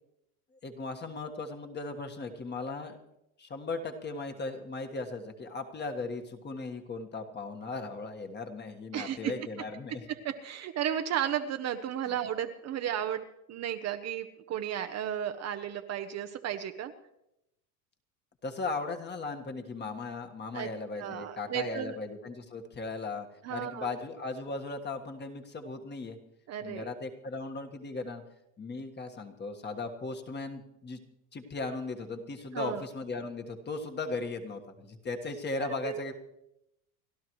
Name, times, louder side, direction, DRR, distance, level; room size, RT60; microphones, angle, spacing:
voice 1, 0.6-3.0 3.4-10.0 12.1-12.2 18.4-26.2 26.6-28.2 28.6-31.0 31.3-36.1, left 3 dB, 25° left, 5 dB, 1.6 m, -37 dB
voice 2, 8.9-9.3 10.1-16.9 20.5-20.7 21.0-22.0 23.4-24.0 26.5-26.9 32.5-32.8 35.6-36.0, right 10 dB, 35° right, 7 dB, 0.9 m, -34 dB
29.5 x 11.5 x 3.1 m, 0.84 s
supercardioid pair, 110°, 45 cm